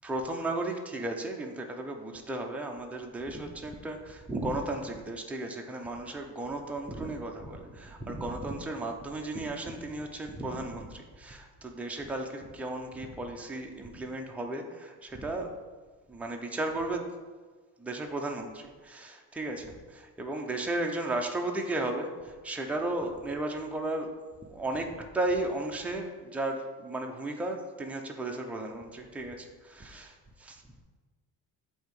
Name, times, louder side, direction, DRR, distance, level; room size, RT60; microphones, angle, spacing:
voice 1, 0.0-15.5 16.1-17.1 17.8-24.1 24.4-30.6, right 2 dB, 5° right, 1 dB, 0.3 m, -35 dB
7.7 x 2.7 x 5.2 m, 1.4 s
cardioid pair, 165°, 36 cm